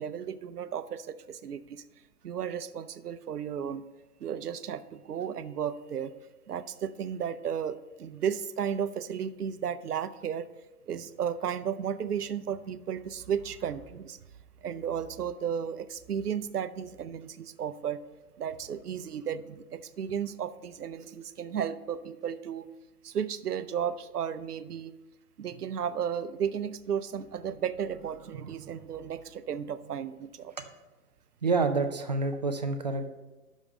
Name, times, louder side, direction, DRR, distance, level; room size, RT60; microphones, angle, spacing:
voice 1, 0.0-1.8 2.2-3.8 4.2-6.1 6.5-10.5 10.9-14.2 14.6-18.0 18.4-22.7 23.0-25.0 25.4-30.5, right 8 dB, 85° right, 14 dB, 0.7 m, -34 dB
voice 2, 31.4-33.1, right 3 dB, 30° right, 7 dB, 0.4 m, -28 dB
6.3 x 5.3 x 6.4 m, 1.2 s
hypercardioid pair, 135°, 45 cm